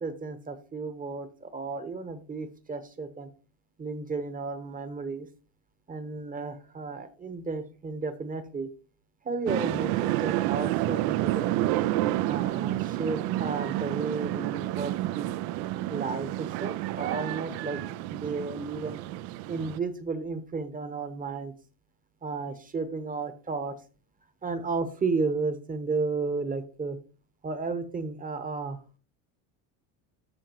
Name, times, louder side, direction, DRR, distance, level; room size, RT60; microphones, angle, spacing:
voice 1, 0.0-3.3 3.8-5.3 5.9-8.7 9.2-11.6 12.2-15.3 15.9-17.8 18.1-19.0 19.5-21.5 22.2-23.7 24.4-27.0 27.4-28.8, right 4 dB, 20° right, 10 dB, 1.0 m, -33 dB
sound 1, 9.5-19.8, right 15 dB, 60° right, 0.5 m, -29 dB
13.0 x 4.8 x 3.0 m, 0.38 s
supercardioid pair, 110°, 43 cm